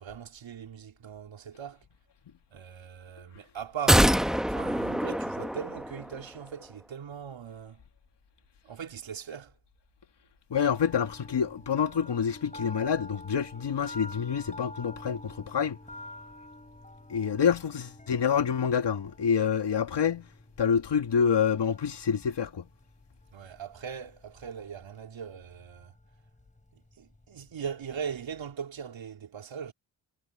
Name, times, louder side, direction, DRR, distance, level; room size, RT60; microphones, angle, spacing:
voice 1, 0.0-1.8 2.5-4.2 4.5-7.8 8.6-9.6 23.3-25.9 26.7-29.7, right 7 dB, 70° right, 3.3 m, -40 dB
sound 1, 3.9-6.2 6.5-6.6, equal, ahead, 1.0 m, -25 dB
voice 2, 10.5-15.8 17.1-20.3 20.6-22.7, left 7 dB, 60° left, 2.0 m, -27 dB
sound 2, 10.5-28.5, left 1 dB, 15° left, 3.7 m, -49 dB
cardioid pair, 55°, 48 cm